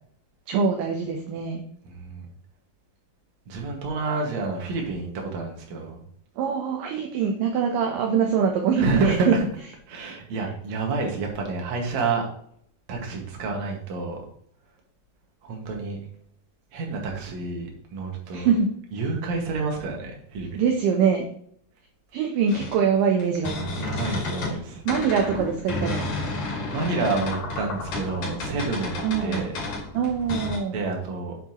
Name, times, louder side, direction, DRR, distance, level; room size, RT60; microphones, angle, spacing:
voice 1, 0.5-1.6 6.4-9.3 18.3-18.7 20.5-21.3 22.1-23.7 24.5-24.6 24.9-26.1 29.0-29.5 29.9-30.8, right 6 dB, 75° right, 2 dB, 2.4 m, -23 dB
voice 2, 1.9-2.2 3.5-6.0 8.8-9.4 9.9-12.3 12.9-14.2 15.4-16.0 16.7-18.5 18.9-20.6 23.8-24.8 26.7-29.5 30.7-31.4, right 3 dB, 55° right, 1 dB, 2.8 m, -29 dB
sound 1, 22.5-24.6 24.9-30.6, left 3 dB, 60° left, 4.2 m, -31 dB
9.1 x 7.3 x 3.0 m, 0.65 s
omnidirectional pair, 4.2 m